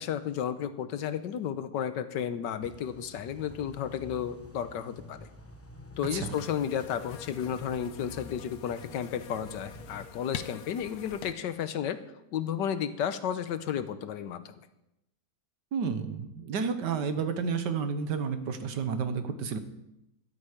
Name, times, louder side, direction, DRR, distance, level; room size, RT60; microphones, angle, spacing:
voice 1, 0.0-5.3 6.0-12.0 12.3-14.7, left 9 dB, 85° left, 12 dB, 1.5 m, -33 dB
sound 1, 2.6-10.1, left 2 dB, 15° left, 0.5 m, -49 dB
sound 2, 6.3-11.3, left 8 dB, 65° left, 1.1 m, -45 dB
voice 2, 15.7-19.6, right 6 dB, 80° right, 9 dB, 1.7 m, -31 dB
13.0 x 12.0 x 5.0 m, 0.88 s
omnidirectional pair, 1.8 m